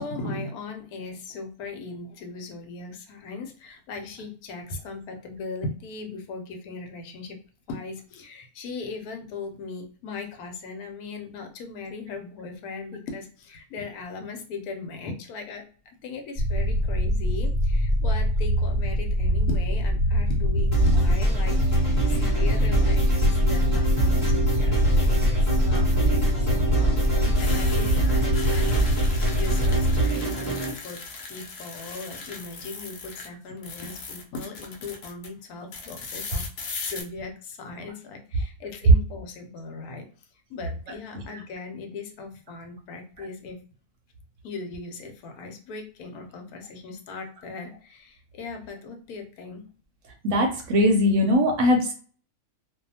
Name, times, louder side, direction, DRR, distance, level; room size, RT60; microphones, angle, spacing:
voice 1, 0.0-7.4 7.7-31.0 31.3-40.1 40.5-43.6 44.4-49.7, left 3 dB, 80° left, 5 dB, 1.1 m, -38 dB
sound 1, 16.4-30.0, left 1 dB, 15° right, 0.9 m, -23 dB
sound 2, 20.7-30.7, right 3 dB, 15° left, 0.8 m, -28 dB
sound 3, 23.6-24.1 26.0-33.3 33.6-35.3 35.7-37.0, left 4 dB, 60° left, 0.6 m, -39 dB
voice 2, 50.2-51.9, left 1 dB, 70° right, 3 dB, 0.8 m, -21 dB
2.6 x 2.2 x 2.7 m, 0.42 s
omnidirectional pair, 1.6 m